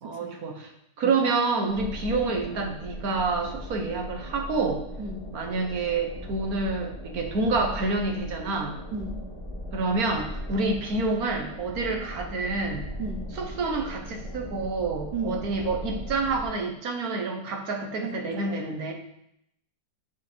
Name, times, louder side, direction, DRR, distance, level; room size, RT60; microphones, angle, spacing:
voice 1, 0.0-0.7 1.0-4.8 5.3-8.8 9.7-12.9 13.4-18.9, right 3 dB, 60° right, 2 dB, 1.4 m, -28 dB
sound 1, 1.7-16.5, equal, 5° left, 2.4 m, -39 dB
voice 2, 5.0-5.3 8.9-9.2 13.0-13.3 15.1-15.5 18.0-18.9, right 3 dB, 80° right, 6 dB, 1.4 m, -35 dB
8.2 x 4.7 x 4.4 m, 0.78 s
omnidirectional pair, 1.8 m